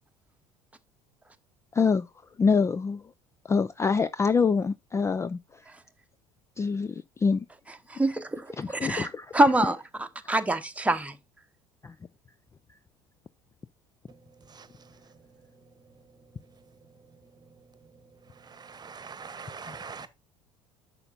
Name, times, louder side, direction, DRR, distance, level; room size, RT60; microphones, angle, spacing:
voice 1, 1.7-2.1 2.4-3.0 3.4-5.6 6.6-7.4 8.6-9.4 11.8-11.9 19.7-19.8, left 5 dB, 15° left, 0.4 m, -25 dB
voice 2, 7.9-8.5 8.8-9.1 9.3-11.1, right 1 dB, 10° right, 1.0 m, -25 dB
voice 3, 18.5-20.1, right 5 dB, 25° right, 1.2 m, -42 dB
10.5 x 6.7 x 2.5 m
figure-of-eight pair, 65°, 17 cm